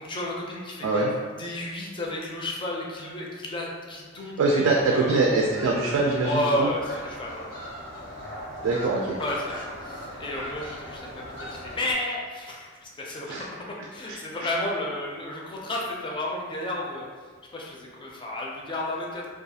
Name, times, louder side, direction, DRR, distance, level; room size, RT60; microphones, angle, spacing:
voice 1, 0.0-5.2 6.2-7.6 9.2-19.3, left 1 dB, 25° left, -3 dB, 0.4 m, -32 dB
voice 2, 4.4-6.7 8.6-9.2 13.3-13.4 14.1-14.2, right 3 dB, 85° right, -2 dB, 0.3 m, -23 dB
sound 1, 4.8-11.9, equal, 75° left, 0.8 m, -39 dB
2.3 x 2.3 x 2.7 m, 1.6 s
head